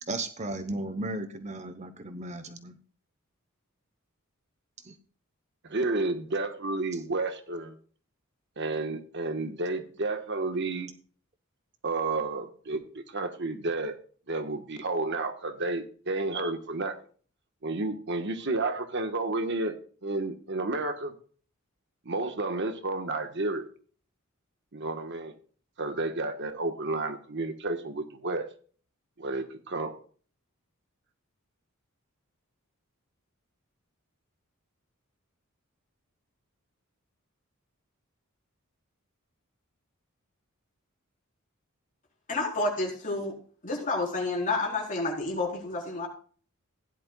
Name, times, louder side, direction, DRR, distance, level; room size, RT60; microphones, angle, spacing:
voice 1, 0.0-2.7 4.8-4.9, right 2 dB, 30° right, 9 dB, 0.9 m, -35 dB
voice 2, 5.7-7.7 8.6-10.9 11.8-14.0 14.3-17.0 17.6-19.7 20.0-21.1 22.0-23.6 24.7-25.3 25.8-28.5 29.2-29.9, right 2 dB, 55° right, 8 dB, 1.3 m, -31 dB
voice 3, 42.3-43.3 43.6-46.1, left 2 dB, 35° left, -1 dB, 4.2 m, -29 dB
16.0 x 11.0 x 2.3 m, 0.43 s
head